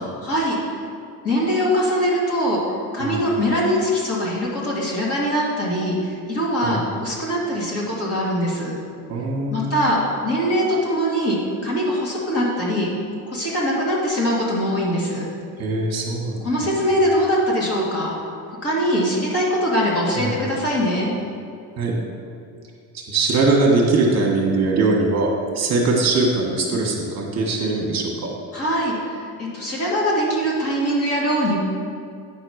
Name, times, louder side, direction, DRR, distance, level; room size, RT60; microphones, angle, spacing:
voice 1, 0.2-0.7 1.2-2.6 2.9-8.8 9.5-11.4 11.6-12.9 13.3-15.3 16.4-18.1 18.5-21.1 28.5-31.6, equal, 35° left, -5 dB, 2.2 m, -22 dB
voice 2, 9.1-9.8 15.6-16.7 20.1-20.4 21.8-21.9 22.9-28.3, right 3 dB, 45° right, -1 dB, 1.4 m, -21 dB
9.5 x 4.1 x 6.4 m, 2.4 s
cardioid pair, 145°, 38 cm